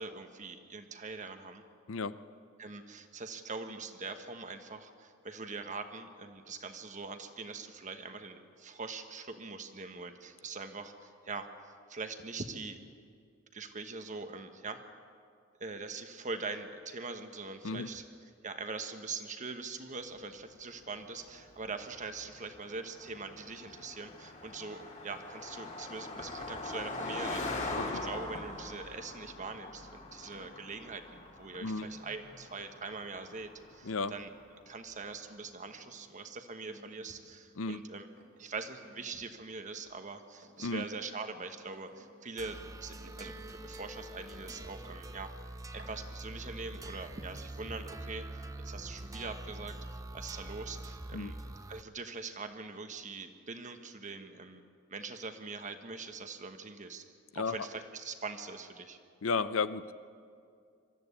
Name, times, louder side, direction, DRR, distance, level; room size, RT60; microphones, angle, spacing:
voice 1, 0.0-1.6 2.6-11.5 11.9-12.8 13.5-14.8 15.6-18.0 18.4-34.3 34.7-38.1 38.4-45.3 45.7-49.7 50.1-51.4 51.7-54.6 54.9-57.0 57.3-59.0, right 4 dB, 40° right, 7 dB, 1.3 m, -43 dB
Car passing by, 20.9-34.6, left 2 dB, 40° left, 2.3 m, -42 dB
sound 1, 28.1-34.5 34.9-37.8 38.1-39.9 40.2-42.3 42.9-45.1 45.6-46.6 47.0-47.6, right 1 dB, 65° right, 3.1 m, -61 dB
sound 2, 42.4-51.8, right 1 dB, 15° right, 0.7 m, -44 dB
voice 2, 59.2-59.9, left 4 dB, 85° left, 14 dB, 0.6 m, -33 dB
23.5 x 13.5 x 8.4 m, 2.3 s
head